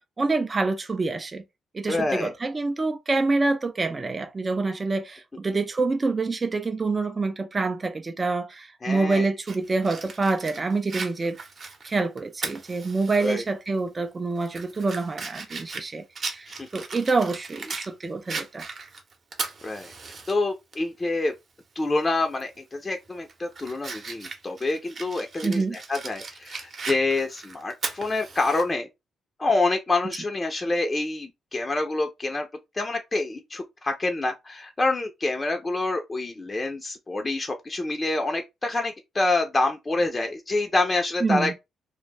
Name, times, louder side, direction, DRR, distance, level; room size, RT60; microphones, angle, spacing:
voice 1, 0.2-1.4 1.7-11.4 11.8-18.7 25.4-25.8 41.2-41.5, right 3 dB, 30° right, 0.4 m, -26 dB
voice 2, 1.9-2.3 8.8-9.3 13.2-13.4 16.5-16.7 19.6-19.9 20.3-21.3 21.8-28.9 29.4-32.5 32.7-41.6, left 2 dB, 25° left, 0.5 m, -27 dB
Fire, 9.5-13.3 13.7-13.8 14.3-17.9 18.3-20.3 20.7-20.8 22.3-22.6 23.0-28.6, right 4 dB, 50° right, 0.8 m, -37 dB
2.2 x 2.0 x 3.2 m
cardioid pair, 70°, 0 cm